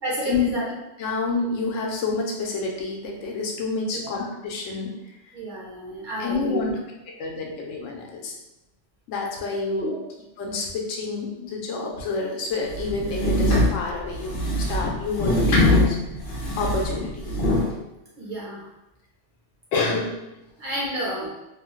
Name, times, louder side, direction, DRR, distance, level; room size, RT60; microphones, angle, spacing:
voice 1, 0.0-0.7 3.9-4.2 5.3-6.6 9.7-9.9 18.2-18.6 20.6-21.3, right 1 dB, 45° right, -6 dB, 0.8 m, -30 dB
voice 2, 1.0-4.9 6.2-6.7 7.2-8.3 9.1-10.0 10.4-16.0 16.6-17.3 19.7-20.2, left 4 dB, 85° left, -1 dB, 1.0 m, -28 dB
sound 1, 12.7-17.7, left 1 dB, 55° left, 0.7 m, -22 dB
3.0 x 2.0 x 3.0 m, 0.95 s
omnidirectional pair, 1.3 m